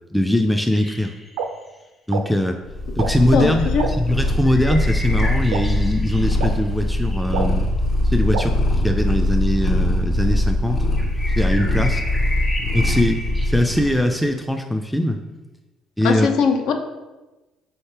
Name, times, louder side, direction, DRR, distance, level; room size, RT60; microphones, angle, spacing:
voice 1, 0.1-1.1 2.1-2.6 3.0-7.7 8.0-8.5 8.8-10.8 11.4-12.0 12.7-15.2 16.0-16.3, left 1 dB, ahead, 4 dB, 0.3 m, -21 dB
sound 1, 0.7-1.7 4.4-7.6 10.9-14.2, left 1 dB, 20° left, 1.1 m, -33 dB
sound 2, 1.4-1.5 2.1-2.2 3.0-3.1 3.8-3.9 4.7-4.8 5.5-5.6 6.4-6.5 7.3-7.5 8.3-8.4, right 6 dB, 80° right, 0.3 m, -25 dB
Purr, 2.7-14.0, left 1 dB, 45° left, 0.8 m, -21 dB
voice 2, 3.3-3.8 16.0-16.7, left 5 dB, 70° left, 5 dB, 0.5 m, -20 dB
3.1 x 2.8 x 4.6 m, 1.1 s
hypercardioid pair, 60°, 0 cm